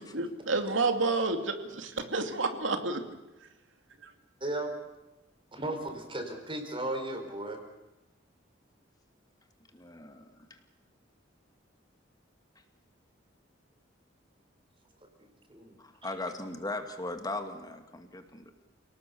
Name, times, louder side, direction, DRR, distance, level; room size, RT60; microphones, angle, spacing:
voice 1, 0.0-3.0 4.0-4.1, right 3 dB, 90° right, 7 dB, 2.5 m, -30 dB
voice 2, 4.4-4.8 5.5-7.6 15.2-15.8, right 1 dB, 30° right, 5 dB, 4.4 m, -35 dB
voice 3, 9.7-10.6 15.8-18.5, left 2 dB, 20° left, 6 dB, 2.3 m, -38 dB
29.0 x 18.5 x 7.0 m, 1.0 s
head